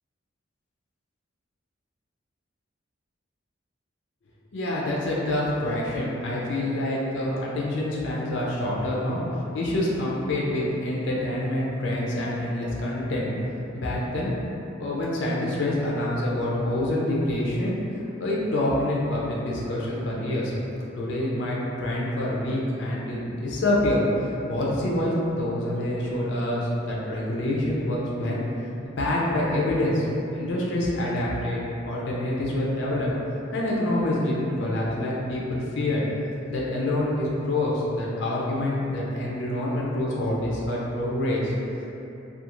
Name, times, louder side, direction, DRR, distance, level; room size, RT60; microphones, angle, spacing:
voice 1, 4.5-9.2 9.5-13.3 13.7-14.3 14.8-17.8 18.2-20.5 20.9-28.4 28.8-30.0 30.3-31.6 31.9-33.1 33.5-36.0 36.5-41.5, left 1 dB, 65° left, -5 dB, 0.5 m, -26 dB
2.4 x 2.3 x 2.9 m, 2.9 s
head